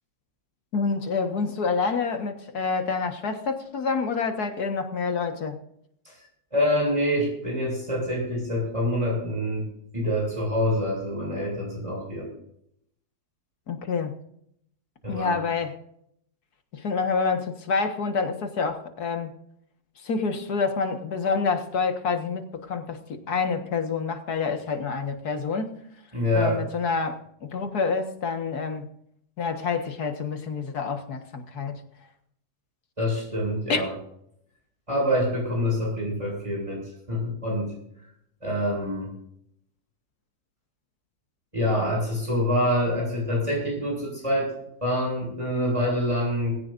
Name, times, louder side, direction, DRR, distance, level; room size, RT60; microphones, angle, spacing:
voice 1, 0.7-5.6 13.7-14.1 15.1-15.7 16.7-19.3 20.0-25.8 26.4-28.9 29.4-31.8 33.7-33.8, left 5 dB, 80° left, 2.1 m, -27 dB
voice 2, 6.5-9.6 9.9-12.3 15.0-15.4 26.1-26.6 33.0-33.9 34.9-36.8 37.1-37.7 38.4-39.1 41.5-44.5 44.8-46.6, equal, 20° right, 7.9 m, -26 dB
19.5 x 17.0 x 2.6 m
omnidirectional pair, 1.6 m